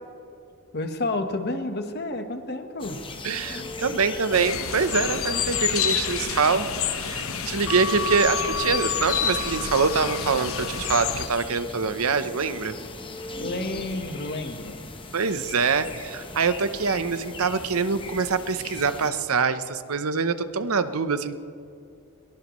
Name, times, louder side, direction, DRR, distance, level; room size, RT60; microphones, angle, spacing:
voice 1, 0.7-3.0 13.4-14.9, left 2 dB, 50° left, 6 dB, 1.3 m, -30 dB
sound 1, 2.8-19.1, left 3 dB, 25° left, 1.1 m, -39 dB
voice 2, 3.2-12.8 15.1-21.3, right 5 dB, 80° right, 11 dB, 0.9 m, -25 dB
sound 2, 4.3-11.3, left 7 dB, 70° left, 1.0 m, -28 dB
22.0 x 20.0 x 3.2 m, 2.5 s
head